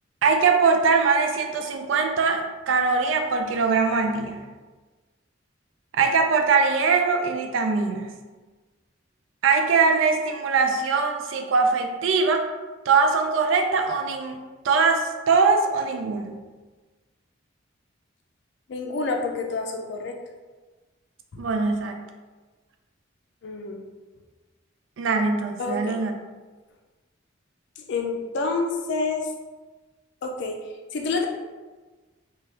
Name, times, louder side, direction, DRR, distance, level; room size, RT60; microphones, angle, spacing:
voice 1, 0.2-4.5 5.9-8.2 9.4-12.4 12.9-14.4 14.6-16.4 21.4-22.0 25.0-26.1, right 4 dB, 75° right, 5 dB, 0.4 m, -22 dB
voice 2, 18.7-20.2 21.3-21.5 23.4-23.8 25.6-26.0 27.9-29.3 30.2-31.3, left 3 dB, 65° left, 3 dB, 0.4 m, -28 dB
3.2 x 2.3 x 2.8 m, 1.3 s
head